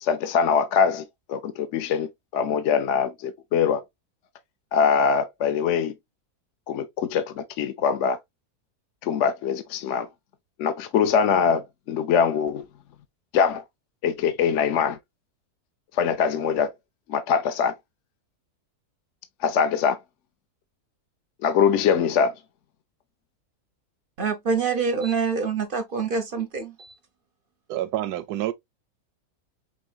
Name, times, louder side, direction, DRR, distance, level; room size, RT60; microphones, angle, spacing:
voice 1, 0.0-3.8 4.7-5.9 6.7-8.2 9.0-10.1 10.6-12.6 13.3-13.6 14.0-15.0 15.9-16.7 17.1-17.7 19.4-20.0 21.4-22.3, left 7 dB, 60° left, 0.9 m, -23 dB
voice 2, 24.2-26.9, right 5 dB, 50° right, 0.6 m, -26 dB
voice 3, 27.7-28.5, right 13 dB, 80° right, 1.1 m, -28 dB
5.4 x 3.6 x 2.3 m
omnidirectional pair, 1.6 m